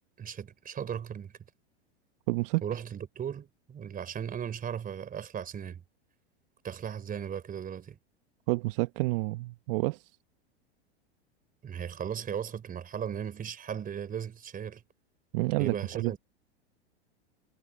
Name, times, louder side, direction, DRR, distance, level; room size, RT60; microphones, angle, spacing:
voice 1, 0.2-1.3 2.6-5.8 6.6-8.0 11.6-14.8 15.6-16.2, right 8 dB, 25° right, 4.0 m, -37 dB
voice 2, 2.3-2.6 8.5-10.0 15.3-16.2, right 22 dB, 55° right, 1.2 m, -29 dB
hypercardioid pair, 110°, 33 cm